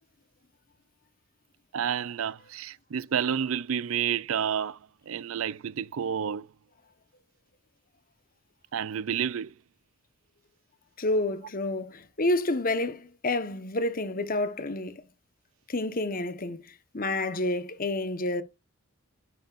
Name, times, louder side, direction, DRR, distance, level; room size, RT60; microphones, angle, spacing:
voice 1, 1.7-4.8 5.1-6.5 8.7-9.5, right 8 dB, 70° right, 0.4 m, -30 dB
voice 2, 11.0-15.0 15.7-16.6 16.9-18.4, left 2 dB, 40° left, 1.2 m, -29 dB
11.0 x 9.1 x 2.5 m
head